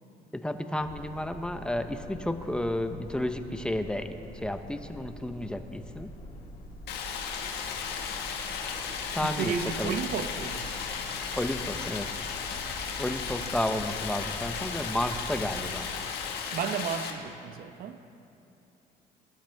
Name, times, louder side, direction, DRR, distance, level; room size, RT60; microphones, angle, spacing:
voice 1, 0.3-6.1 9.1-10.0 11.4-12.1 13.0-15.9, left 1 dB, 5° left, 0.7 m, -32 dB
sound 1, 0.8-15.9, left 1 dB, 60° left, 1.7 m, -45 dB
Stream, 6.9-17.1, left 6 dB, 80° left, 1.5 m, -35 dB
voice 2, 9.2-10.7 16.5-18.0, right 7 dB, 60° right, 0.7 m, -33 dB
22.0 x 12.0 x 3.4 m
cardioid pair, 110°, 17 cm